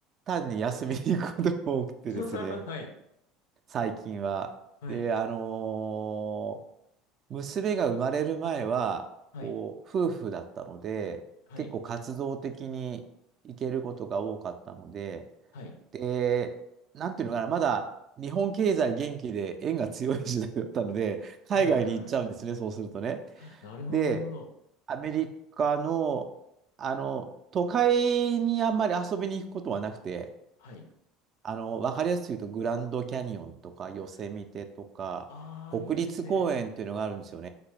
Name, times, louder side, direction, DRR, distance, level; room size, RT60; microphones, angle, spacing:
voice 1, 0.3-2.5 3.7-4.5 4.9-6.6 7.3-9.1 9.4-11.2 11.6-13.0 13.4-15.2 15.9-16.6 16.9-17.9 18.2-23.2 23.9-24.2 24.9-25.3 25.6-26.3 26.8-30.3 31.4-34.6 35.0-35.3 35.7-37.5, right 7 dB, 45° right, 7 dB, 0.3 m, -30 dB
voice 2, 2.1-2.9 4.8-5.1 9.3-9.6 11.5-11.7 15.5-15.8 21.5-22.1 23.4-24.5 30.6-30.9 34.1-34.2 35.3-36.4, left 3 dB, 75° left, 5 dB, 0.4 m, -40 dB
2.9 x 2.1 x 3.2 m, 0.79 s
hypercardioid pair, 70°, 0 cm